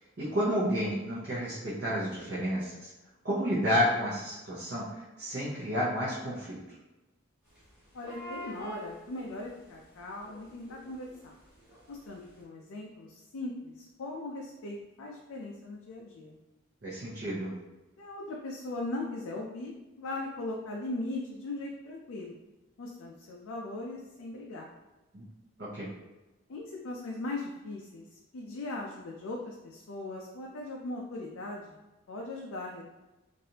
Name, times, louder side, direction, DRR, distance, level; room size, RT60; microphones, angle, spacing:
voice 1, 0.2-2.9 3.2-6.6 16.8-17.5 25.1-25.2 25.6-25.9, equal, 50° right, -9 dB, 0.8 m, -31 dB
sound 1, 7.5-7.6 7.9-9.7 10.0-12.0 12.3-12.4, equal, 5° right, 1.1 m, -45 dB
voice 2, 7.9-11.3 11.9-16.4 18.0-22.4 22.8-24.7 26.5-31.8 32.1-32.8, left 2 dB, 75° left, -1 dB, 0.4 m, -39 dB
3.2 x 2.6 x 2.8 m, 1.1 s
head